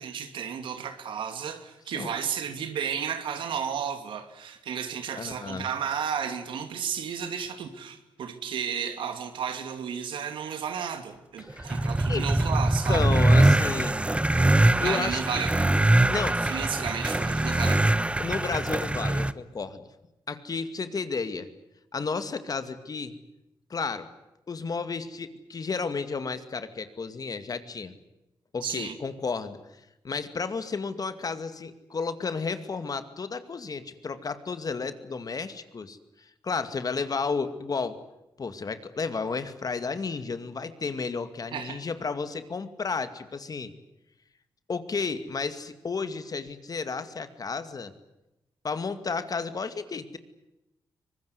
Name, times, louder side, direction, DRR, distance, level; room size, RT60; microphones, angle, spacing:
voice 1, 0.0-13.2 14.8-15.8 16.4-18.1 28.6-28.9 41.5-41.8, right 7 dB, 80° right, 8 dB, 2.7 m, -33 dB
voice 2, 5.2-5.7 11.4-12.2 12.9-14.0 14.8-15.4 16.1-16.4 18.2-19.8 20.3-21.5 21.9-23.1 23.7-24.1 24.5-27.9 28.5-29.6 30.0-36.0 36.4-38.0 38.4-43.7 44.7-47.9 48.6-50.2, left 4 dB, 50° left, 10 dB, 2.3 m, -32 dB
sound 1, 11.5-19.3, right 1 dB, 15° right, 1.1 m, -23 dB
24.0 x 20.5 x 9.7 m, 0.92 s
cardioid pair, 60°, 8 cm